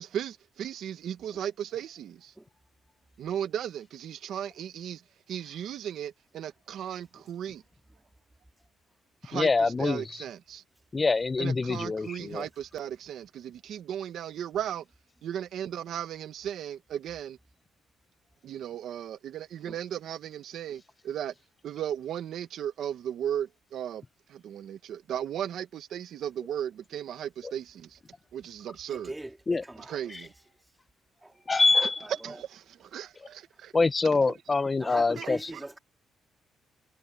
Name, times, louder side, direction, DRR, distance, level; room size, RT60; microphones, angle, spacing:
voice 1, 0.0-2.3 3.2-5.0 5.3-7.6 9.2-10.6 11.4-14.8 15.2-17.4 18.4-21.3 21.6-24.0 24.3-28.0 28.3-29.1 29.8-30.3 32.2-33.7 34.9-35.3, right 10 dB, 65° right, 1.3 m, -36 dB
voice 2, 9.3-10.2 10.9-12.5 29.5-29.6 30.1-30.2 31.5-32.1 33.7-35.5, left 3 dB, 25° left, 0.7 m, -25 dB
voice 3, 28.9-30.3 31.2-31.4 32.0-32.4 34.8-35.8, right 1 dB, 10° right, 2.9 m, -42 dB
cardioid pair, 115°, 0 cm